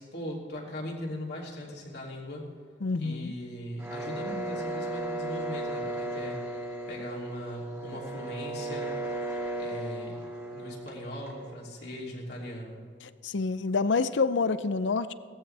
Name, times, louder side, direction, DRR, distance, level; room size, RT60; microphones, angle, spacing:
voice 1, 0.0-2.4 3.0-8.9 9.5-10.2 10.5-12.8, equal, 60° left, -3 dB, 3.0 m, -39 dB
voice 2, 2.8-3.3 13.0-15.1, left 4 dB, 75° left, 14 dB, 0.6 m, -27 dB
sound 1, 3.8-11.5, right 2 dB, 15° right, 2.5 m, -36 dB
18.5 x 14.5 x 3.4 m, 2.2 s
head